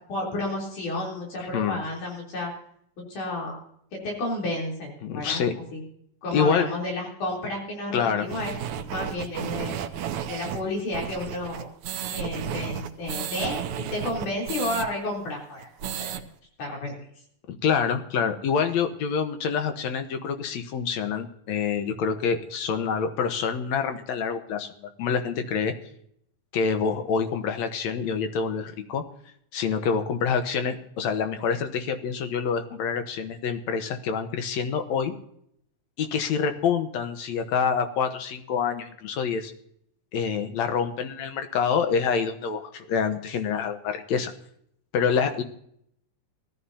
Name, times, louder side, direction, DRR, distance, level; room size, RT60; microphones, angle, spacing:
voice 1, 0.1-2.5 3.1-3.6 3.9-5.4 5.7-5.8 6.2-8.5 8.9-9.8 10.3-11.7 12.1-16.1 16.6-17.0, left 2 dB, 85° left, -2 dB, 5.1 m, -31 dB
voice 2, 5.0-5.5 6.3-6.6 7.9-8.3 17.6-24.7 25.0-25.7 26.5-29.0 29.5-35.1 36.0-39.5 40.1-44.3 44.9-45.4, left 6 dB, 70° left, 7 dB, 2.4 m, -26 dB
sound 1, 8.3-14.9 15.2-15.3 15.6-16.2, right 9 dB, 80° right, 2.2 m, -33 dB
19.0 x 14.5 x 2.8 m, 0.68 s
omnidirectional pair, 3.5 m